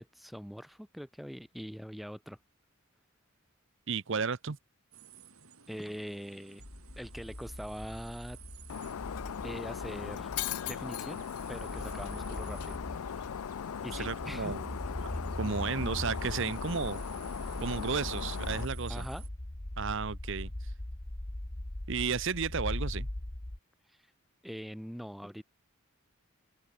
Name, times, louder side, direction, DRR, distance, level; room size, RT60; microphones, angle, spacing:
voice 1, 0.0-2.4 5.7-6.7 7.0-8.4 9.4-10.3 10.6-12.8 13.8-14.5 18.9-19.2 23.9-24.0 24.4-25.4, equal, ahead, 0.6 m, -43 dB
voice 2, 3.9-4.6 13.9-14.8 15.4-17.0 17.6-19.1 19.8-20.5 21.9-23.1, right 5 dB, 60° right, 0.7 m, -33 dB
sound 1, 4.9-19.3, right 8 dB, 80° right, 7.9 m, -55 dB
sound 2, 6.6-23.6, left 1 dB, 30° left, 1.3 m, -40 dB
Shatter, 8.7-18.7, left 8 dB, 85° left, 0.4 m, -39 dB
head